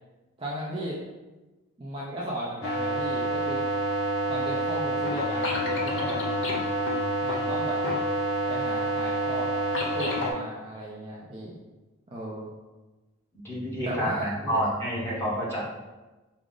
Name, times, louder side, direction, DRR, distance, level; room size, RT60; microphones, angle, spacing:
voice 1, 0.4-1.0 1.8-3.6 4.3-6.2 7.2-7.8 8.5-9.5 9.9-11.5 12.1-12.5 13.8-14.6, right 1 dB, 25° right, -5 dB, 0.4 m, -35 dB
sound 1, 2.6-10.3, right 1 dB, 65° left, 0.7 m, -28 dB
voice 2, 13.4-15.6, equal, 10° left, -7 dB, 1.0 m, -29 dB
4.8 x 2.0 x 3.7 m, 1.2 s
head